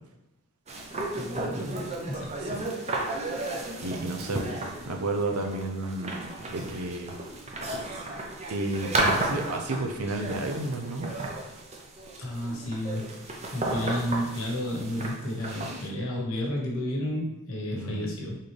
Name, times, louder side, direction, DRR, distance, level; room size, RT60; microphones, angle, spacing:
sound 1, 0.7-15.9, right 2 dB, 30° right, 0.6 m, -33 dB
voice 1, 1.2-2.5 12.2-18.4, left 1 dB, 65° left, -1 dB, 1.1 m, -32 dB
voice 2, 3.8-4.4 4.8-7.1 8.5-11.1 17.7-18.1, right 2 dB, 80° right, 4 dB, 0.6 m, -31 dB
4.4 x 3.6 x 3.3 m, 0.99 s
head